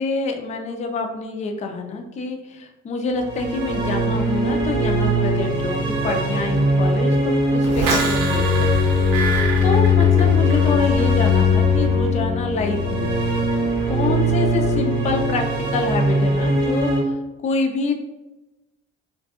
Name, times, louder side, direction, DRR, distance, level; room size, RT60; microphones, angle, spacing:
voice 1, 0.0-8.8 9.6-13.1 13.9-15.4 15.7-18.0, left 3 dB, 20° left, 4 dB, 0.3 m, -26 dB
sound 1, 3.2-17.0, left 2 dB, 30° right, 0.9 m, -20 dB
sound 2, 7.6-10.7 11.0-11.4, right 3 dB, 70° right, 0.7 m, -26 dB
2.5 x 2.4 x 2.3 m, 1.1 s
hypercardioid pair, 55°, 39 cm